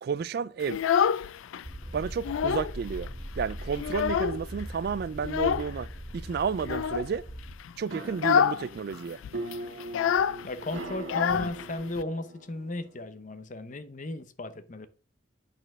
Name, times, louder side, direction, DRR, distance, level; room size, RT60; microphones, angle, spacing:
voice 1, 0.0-0.8 1.9-3.1 3.4-5.9 6.1-7.2 7.8-9.2, right 6 dB, 50° right, 0.3 m, -31 dB
Child speech kid speaking, 0.6-1.6 2.0-2.8 3.1-3.2 3.5-4.6 5.2-5.7 6.6-7.1 7.5-7.7 8.1-8.7 8.9-9.0 9.2-12.0, left 7 dB, 80° left, 0.3 m, -27 dB
sound 1, 1.6-7.5, equal, 20° right, 2.7 m, -40 dB
sound 2, 7.8-13.0, right 2 dB, 75° right, 1.7 m, -41 dB
voice 2, 10.4-14.9, left 2 dB, 40° left, 0.7 m, -35 dB
9.0 x 4.3 x 6.0 m
head